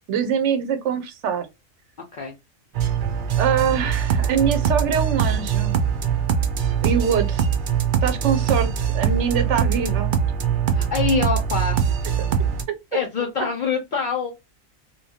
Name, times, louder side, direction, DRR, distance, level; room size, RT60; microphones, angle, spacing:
voice 1, 0.1-1.5 3.4-5.8 6.8-7.4 8.0-10.1, right 7 dB, 65° right, 0.9 m, -23 dB
sound 1, 2.7-12.6, right 8 dB, 90° right, 0.4 m, -22 dB
voice 2, 10.7-11.8 12.9-14.3, left 5 dB, 70° left, 0.4 m, -25 dB
2.9 x 2.3 x 2.7 m
omnidirectional pair, 1.4 m